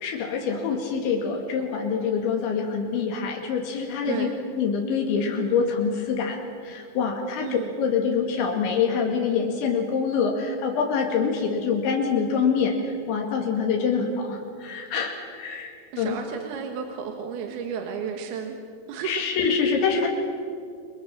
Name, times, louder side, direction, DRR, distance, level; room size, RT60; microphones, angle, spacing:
voice 1, 0.0-4.3 4.5-16.2 19.0-20.1, left 5 dB, 80° left, 1 dB, 4.6 m, -25 dB
voice 2, 15.9-18.6 18.9-19.2, right 7 dB, 65° right, 4 dB, 3.2 m, -32 dB
30.0 x 24.0 x 7.3 m, 2.3 s
omnidirectional pair, 5.3 m